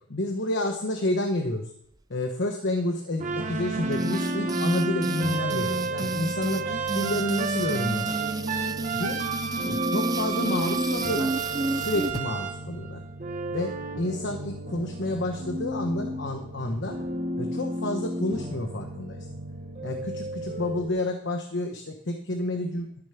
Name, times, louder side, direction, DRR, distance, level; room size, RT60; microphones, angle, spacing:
voice 1, 0.1-1.7 2.1-8.2 8.9-9.2 9.6-11.3 11.7-13.0 13.5-13.7 14.0-16.9 17.4-19.2 19.8-22.9, left 1 dB, 60° left, 4 dB, 1.1 m, -30 dB
sound 1, 3.2-20.9, right 2 dB, 35° right, 1.2 m, -31 dB
sound 2, 3.9-12.2, right 3 dB, 20° right, 0.3 m, -32 dB
13.0 x 7.2 x 5.8 m, 0.72 s
head